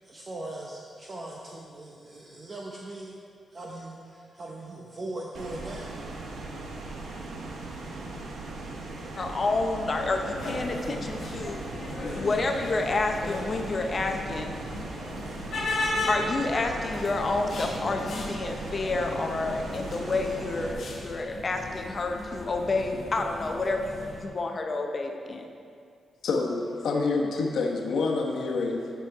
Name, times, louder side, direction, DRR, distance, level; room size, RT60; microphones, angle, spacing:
voice 1, 0.0-3.1 3.5-5.9 8.7-8.8, right 2 dB, 30° right, -2 dB, 0.7 m, -40 dB
AC fan loop, 5.3-20.7, right 2 dB, 80° right, 1.0 m, -39 dB
voice 2, 9.2-11.7 12.1-14.5 16.1-25.5, left 3 dB, 35° left, 3 dB, 0.6 m, -29 dB
sound 1, 10.3-24.2, left 2 dB, 55° left, 1.3 m, -36 dB
voice 3, 26.2-28.9, left 3 dB, 80° left, 0 dB, 1.0 m, -27 dB
9.2 x 6.8 x 4.6 m, 2.4 s
wide cardioid pair, 160°, 0 cm